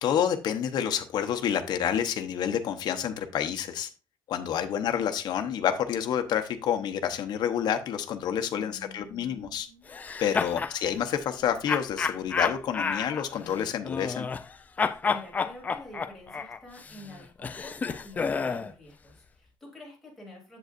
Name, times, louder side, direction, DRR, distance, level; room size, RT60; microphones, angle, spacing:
voice 1, 0.0-3.9 4.3-9.7 10.2-14.3, left 9 dB, 55° left, 7 dB, 0.8 m, -28 dB
voice 2, 8.5-10.0 14.7-20.6, left 1 dB, 5° left, -3 dB, 3.0 m, -49 dB
sound 1, 9.9-10.8 11.7-14.5 14.8-18.7, left 5 dB, 20° left, 0.3 m, -30 dB
7.9 x 7.7 x 2.5 m, 0.33 s
cardioid pair, 175°, 8 cm